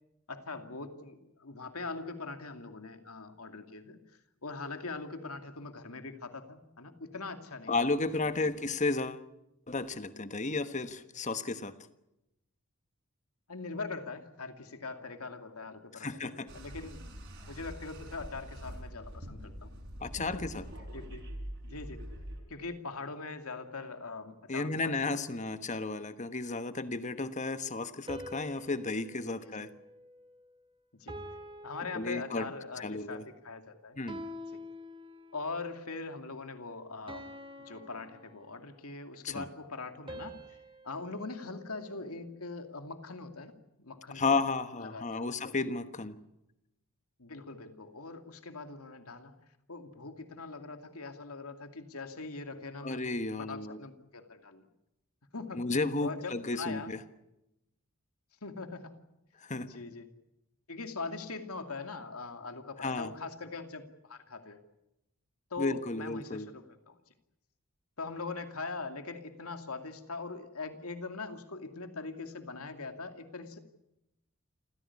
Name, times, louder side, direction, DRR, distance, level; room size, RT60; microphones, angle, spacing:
voice 1, 0.3-4.0 4.4-7.8 8.2-8.3 13.5-17.0 17.5-19.7 20.2-20.4 20.9-21.2 21.6-22.0 22.5-24.9 25.3-25.4 29.4-29.7 30.9-31.2 31.6-34.0 35.3-37.3 37.6-40.4 40.8-43.5 43.8-44.4 44.8-45.2 47.2-49.3 49.7-53.2 53.5-54.7 55.3-55.7 56.0-56.9 58.4-59.0 59.5-60.1 60.7-64.6 65.5-67.0 68.0-73.6, left 3 dB, 85° left, 7 dB, 2.5 m, -42 dB
voice 2, 7.7-9.2 9.7-11.7 15.9-16.5 20.0-20.6 24.5-29.7 31.9-32.5 32.8-33.2 34.0-34.2 39.2-39.5 44.1-46.2 52.8-53.8 55.5-57.0 59.4-59.7 62.8-63.1 65.6-66.5, left 3 dB, 35° left, 11 dB, 1.3 m, -33 dB
sound 1, 16.5-22.4, equal, 55° right, 6.1 m, -44 dB
sound 2, 28.1-30.6 31.1-32.8 34.1-35.6 37.1-38.9 40.1-42.4, equal, 25° right, 2.4 m, -47 dB
28.0 x 15.5 x 9.8 m, 0.89 s
head